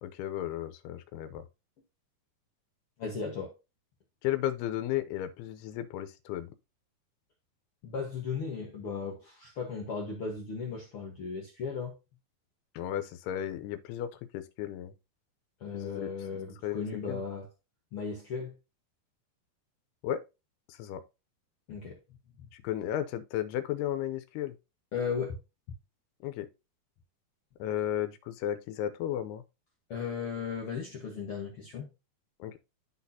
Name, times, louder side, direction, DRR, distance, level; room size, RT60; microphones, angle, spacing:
voice 1, 0.0-1.4 4.2-6.5 12.7-14.9 15.7-17.2 20.0-20.2 20.7-21.0 22.5-24.6 26.2-26.5 27.6-29.4 32.4-32.6, left 11 dB, 90° left, 2.7 m, -34 dB
voice 2, 3.0-3.5 7.8-11.9 15.6-17.5 17.9-18.6 21.7-22.0 22.4-22.5 24.9-25.4 29.9-31.9, left 5 dB, 70° left, 1.3 m, -36 dB
12.0 x 4.1 x 2.7 m
omnidirectional pair, 4.5 m